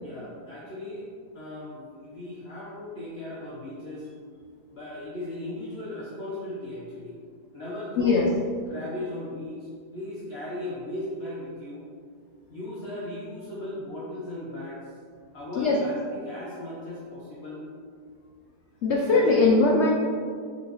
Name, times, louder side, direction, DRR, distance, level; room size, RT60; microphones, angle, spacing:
voice 1, 0.0-1.1 1.3-4.1 4.7-7.2 7.5-8.2 8.7-11.8 12.5-14.8 15.3-17.6 19.1-19.5, left 1 dB, 45° left, -7 dB, 1.2 m, -37 dB
voice 2, 8.0-8.3 15.5-15.8 18.8-19.9, left 3 dB, 60° left, -1 dB, 0.8 m, -20 dB
6.2 x 5.8 x 3.0 m, 2.1 s
omnidirectional pair, 1.7 m